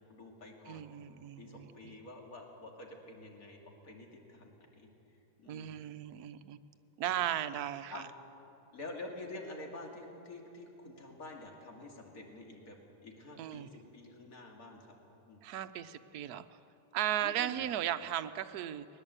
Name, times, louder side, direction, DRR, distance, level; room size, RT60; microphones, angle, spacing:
voice 1, 0.1-0.9 1.4-5.7 7.9-8.1 8.7-12.8 13.0-15.0 15.3-15.4 17.2-17.6, left 2 dB, 55° left, 0 dB, 2.9 m, -48 dB
voice 2, 0.7-2.0 5.5-6.6 7.0-8.0 13.4-13.7 15.4-16.4 16.9-18.9, right 11 dB, 70° right, 10 dB, 1.2 m, -36 dB
21.0 x 19.5 x 8.2 m, 2.9 s
omnidirectional pair, 1.8 m